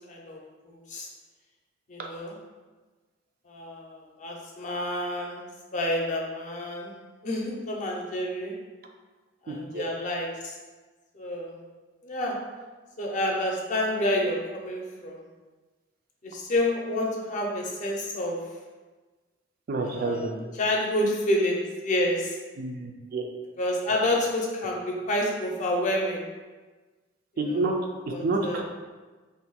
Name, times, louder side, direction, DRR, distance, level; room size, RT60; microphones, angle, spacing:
voice 1, 0.1-0.4 0.7-1.1 1.9-2.4 3.5-5.4 5.7-6.9 7.2-8.5 9.4-10.5 11.1-11.5 12.0-12.4 13.0-15.2 16.2-18.4 19.8-20.3 20.6-22.4 23.6-26.3 27.5-27.6 28.1-28.6, left 1 dB, 45° left, -1 dB, 0.5 m, -29 dB
voice 2, 9.5-9.8 19.7-20.3 22.6-23.3 27.4-27.7 28.1-28.6, right 3 dB, 55° right, 2 dB, 0.4 m, -29 dB
2.5 x 2.2 x 4.0 m, 1.3 s
head